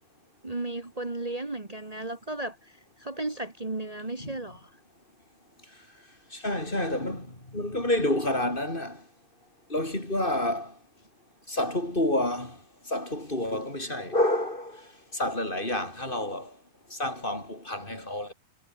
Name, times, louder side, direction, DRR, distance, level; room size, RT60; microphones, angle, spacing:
voice 1, 0.4-4.7, right 2 dB, 30° right, 0.6 m, -35 dB
voice 2, 6.3-9.0 9.7-10.7 11.5-12.6 12.9-16.5 16.9-18.3, left 1 dB, 10° left, 5.8 m, -29 dB
omnidirectional pair, 4.4 m